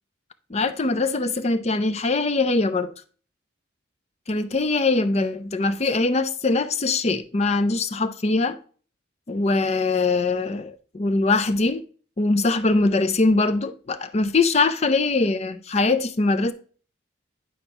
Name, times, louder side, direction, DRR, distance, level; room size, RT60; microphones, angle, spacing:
voice 1, 0.5-2.9 4.3-8.6 9.3-11.8 12.2-16.5, left 3 dB, 35° left, 0.5 m, -22 dB
10.0 x 5.3 x 2.9 m
head